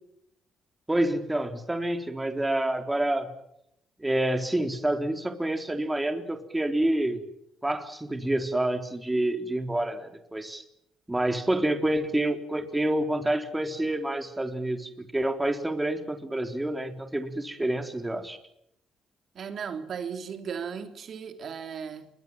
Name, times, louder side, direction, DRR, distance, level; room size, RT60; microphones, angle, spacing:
voice 1, 0.9-3.3 4.0-7.2 7.6-10.6 11.1-18.4, right 1 dB, 10° right, 3.8 m, -28 dB
voice 2, 19.4-22.1, right 6 dB, 55° right, 3.5 m, -36 dB
28.0 x 23.5 x 7.5 m
cardioid pair, 90°, 0 cm